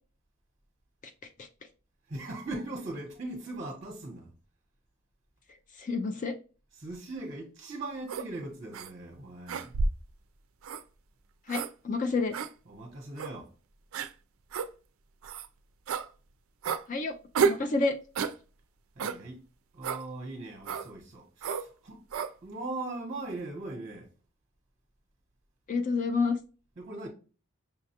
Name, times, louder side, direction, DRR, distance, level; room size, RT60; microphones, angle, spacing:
voice 1, 2.1-4.3 6.8-9.7 12.7-13.5 19.0-19.4 19.7-22.0 22.4-24.1 26.8-27.1, right 2 dB, 30° right, 0.9 m, -39 dB
voice 2, 5.8-6.3 11.5-12.3 16.9-17.1 17.4-17.9 25.7-26.4, left 4 dB, 35° left, 0.4 m, -28 dB
sound 1, 8.1-8.3 8.7-8.9 9.5-10.1 10.6-10.8 11.5-11.7 12.3-12.5 13.2-13.3 13.9-14.1 14.5-14.7 15.2-15.5 15.9-16.1 16.6-16.8 17.3-17.6 18.1-18.4 19.0-19.2 19.8-20.0 20.6-20.9 21.4-21.7 22.1-22.3, right 5 dB, 75° right, 0.4 m, -30 dB
5.7 x 2.3 x 2.8 m
head